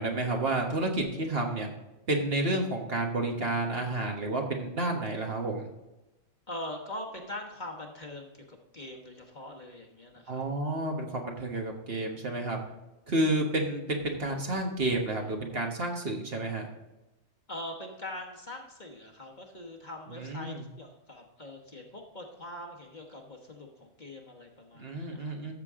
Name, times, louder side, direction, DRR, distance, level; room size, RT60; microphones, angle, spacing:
voice 1, 0.0-1.7 2.1-5.7 10.3-12.6 13.1-16.6 20.1-20.7 24.8-25.5, right 2 dB, 45° right, 1 dB, 1.5 m, -30 dB
voice 2, 6.5-10.5 17.5-25.3, left 1 dB, 35° left, 1 dB, 1.3 m, -42 dB
13.5 x 6.8 x 3.7 m, 0.99 s
omnidirectional pair, 1.4 m